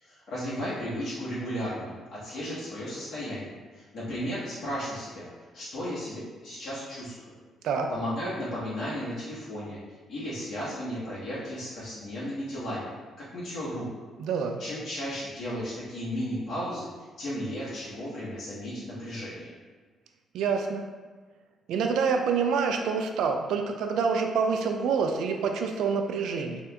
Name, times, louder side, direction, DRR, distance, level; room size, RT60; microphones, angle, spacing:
voice 1, 0.0-5.3 5.5-7.3 7.9-9.8 10.1-13.9 14.6-16.9 17.2-19.5, equal, 65° left, -10 dB, 1.0 m, -34 dB
voice 2, 14.2-14.6 20.3-20.9 21.7-26.6, right 5 dB, 80° right, 4 dB, 0.3 m, -27 dB
2.9 x 2.4 x 3.3 m, 1.4 s
cardioid pair, 90°, 0 cm